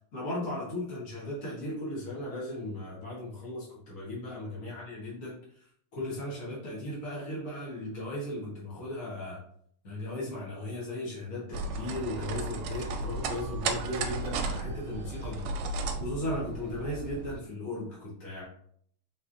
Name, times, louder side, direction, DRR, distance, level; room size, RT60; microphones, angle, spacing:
voice 1, 0.1-5.6 5.9-9.4 9.8-18.4, left 1 dB, 65° left, -6 dB, 0.8 m, -37 dB
sound 1, 11.5-17.4, right 3 dB, 75° right, 1.7 m, -34 dB
4.2 x 4.1 x 2.6 m, 0.64 s
omnidirectional pair, 3.4 m